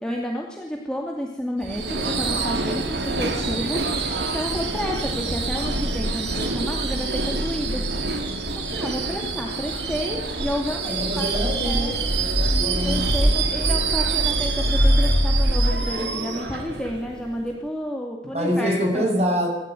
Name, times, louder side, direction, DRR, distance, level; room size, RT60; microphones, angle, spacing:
voice 1, 0.0-7.9 8.6-11.9 12.8-19.0, equal, 5° left, -1 dB, 2.6 m, -31 dB
Subway metro underground / Screech, 1.6-17.6, right 4 dB, 75° right, 3.1 m, -27 dB
sound 1, 2.9-8.8 9.1-9.6 10.0-10.1 10.4-10.5 10.8-15.8, equal, 65° left, 4.4 m, -25 dB
voice 2, 10.8-12.0 12.3-13.4 18.3-19.5, equal, 40° right, 2 dB, 6.9 m, -25 dB
26.5 x 13.5 x 9.3 m, 0.87 s
head